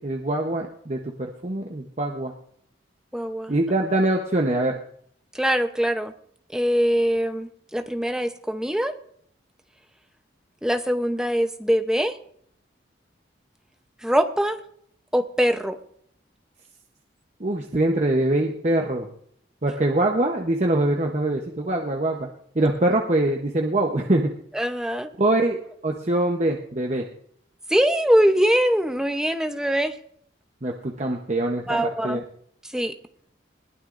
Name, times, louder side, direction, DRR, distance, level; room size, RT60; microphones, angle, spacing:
voice 1, 0.0-2.3 3.5-4.8 17.4-19.1 19.6-22.3 22.5-24.3 25.2-27.1 30.6-31.8 32.0-32.2, right 1 dB, 40° right, 1 dB, 0.9 m, -23 dB
voice 2, 3.1-3.6 5.3-6.1 6.5-8.9 10.6-12.2 14.0-14.6 15.1-15.8 22.6-22.7 24.5-25.1 27.7-29.9 31.7-32.2 32.6-33.0, equal, 5° right, 7 dB, 0.8 m, -22 dB
20.5 x 15.5 x 2.6 m, 0.66 s
head